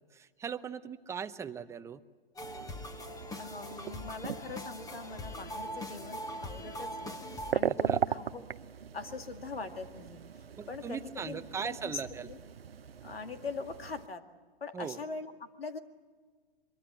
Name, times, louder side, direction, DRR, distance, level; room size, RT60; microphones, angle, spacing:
voice 1, 0.1-2.0 7.7-8.0 10.6-12.3 14.7-15.0, right 6 dB, 10° right, 10 dB, 0.7 m, -39 dB
sound 1, 2.4-7.5, left 1 dB, 10° left, 1.4 m, -42 dB
sound 2, 2.4-14.1, right 8 dB, 90° right, 0.7 m, -39 dB
voice 2, 3.4-7.2 7.5-8.4 8.9-10.2 10.7-12.4 13.0-14.2 14.6-15.8, left 4 dB, 90° left, 7 dB, 2.1 m, -42 dB
23.5 x 23.0 x 8.0 m, 1.5 s
hypercardioid pair, 120°, 29 cm